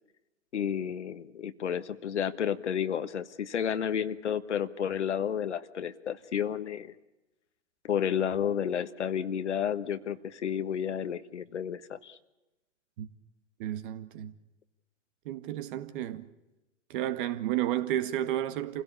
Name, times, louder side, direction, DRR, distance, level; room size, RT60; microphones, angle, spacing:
voice 1, 0.5-6.9 7.8-12.2, left 8 dB, 70° left, 1.4 m, -31 dB
voice 2, 13.6-14.3 15.3-16.3 16.9-18.8, right 12 dB, 45° right, 1.8 m, -32 dB
27.5 x 16.5 x 8.6 m
figure-of-eight pair, 115°, 37 cm